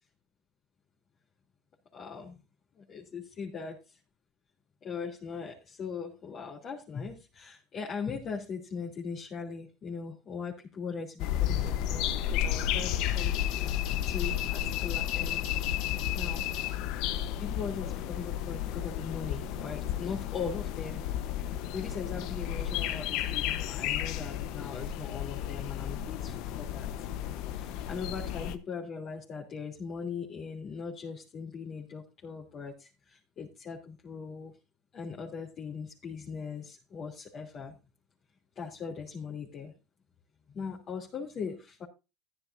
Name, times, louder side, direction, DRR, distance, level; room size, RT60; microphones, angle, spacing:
voice 1, 1.9-2.4 2.7-4.0 4.8-15.5 16.1-16.4 17.4-21.0 21.4-27.1 27.5-34.5 34.9-37.8 38.5-39.7 40.5-41.9, left 5 dB, 40° left, -3 dB, 3.2 m, -40 dB
sound 1, 11.2-28.6, left 11 dB, 65° left, 1.1 m, -32 dB
15.0 x 10.0 x 2.7 m, 0.28 s
supercardioid pair, 100°, 0 cm